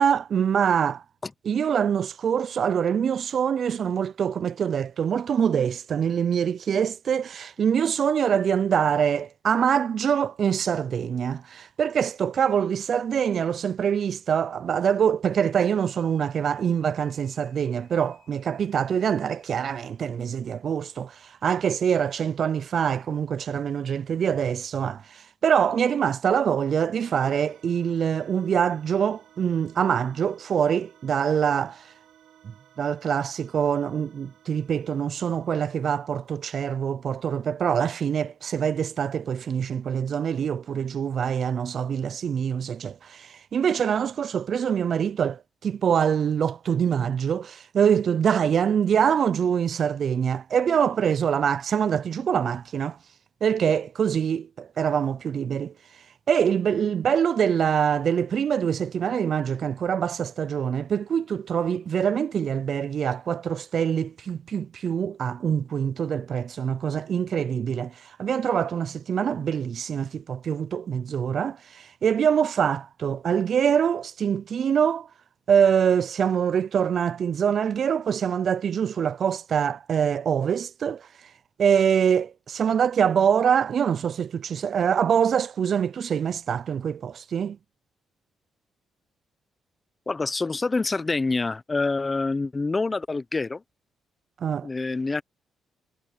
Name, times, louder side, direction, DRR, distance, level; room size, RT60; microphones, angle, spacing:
voice 1, 0.0-1.0 1.5-31.8 32.8-53.0 53.4-55.7 56.3-75.1 75.5-81.0 81.6-87.6 94.4-94.7, right 8 dB, 55° right, 0.3 m, -24 dB
sound 1, 15.3-19.9, left 11 dB, 70° left, 4.1 m, -64 dB
sound 2, 27.0-36.4, right 11 dB, 80° right, 4.1 m, -57 dB
voice 2, 90.1-93.6 94.6-95.2, left 3 dB, 25° left, 0.8 m, -26 dB
cardioid pair, 95°, 0 cm